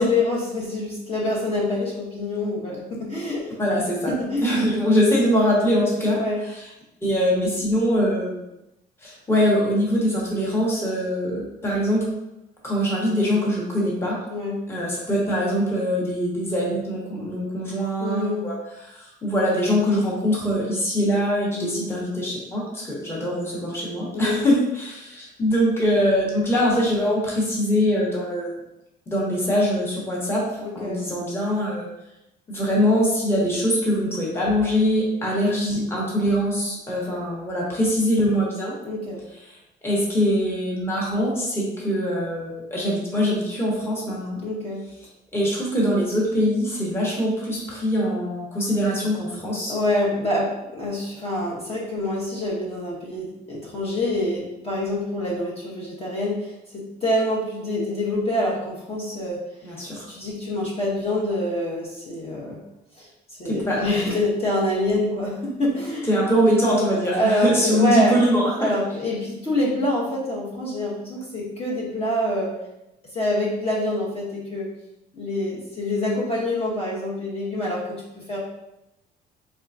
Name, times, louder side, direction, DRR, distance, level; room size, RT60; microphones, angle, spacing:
voice 1, 0.0-3.4 4.1-4.6 6.2-6.4 14.3-14.6 18.0-18.4 21.5-21.8 24.1-24.4 30.6-31.0 38.8-39.2 44.4-44.8 49.7-59.4 60.1-62.6 63.0-63.1 63.4-66.1 67.1-68.2 68.6-72.5 73.1-74.7 75.1-77.8 78.3-78.4, left 1 dB, 35° left, -5 dB, 1.1 m, -26 dB
voice 2, 3.6-4.1 4.4-6.7 7.0-8.5 9.0-12.0 12.6-14.2 14.7-28.5 29.1-30.5 30.7-31.9 32.5-38.7 39.5-39.6 39.8-44.4 45.3-49.7 59.6-60.1 63.4-64.0 66.1-68.7, equal, 15° left, -4 dB, 1.1 m, -23 dB
3.6 x 3.4 x 2.6 m, 0.90 s
cardioid pair, 110°, 17 cm